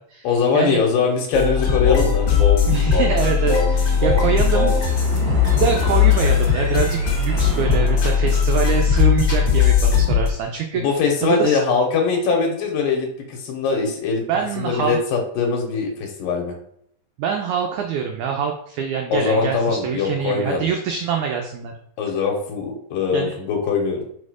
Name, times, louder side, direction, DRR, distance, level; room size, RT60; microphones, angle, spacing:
voice 1, 0.2-2.4 10.7-14.2 14.6-16.5 19.1-20.7 22.0-24.0, left 5 dB, 75° left, 1 dB, 2.4 m, -22 dB
sound 1, 1.3-10.3, left 7 dB, 55° left, 1.4 m, -18 dB
voice 2, 2.7-4.8 5.6-11.6 14.3-15.0 17.2-21.7 23.1-23.3, right 7 dB, 85° right, 2 dB, 1.7 m, -24 dB
Splash splatter, 4.8-8.9, right 4 dB, 65° right, 2.2 m, -33 dB
5.0 x 4.3 x 4.8 m, 0.70 s
omnidirectional pair, 4.1 m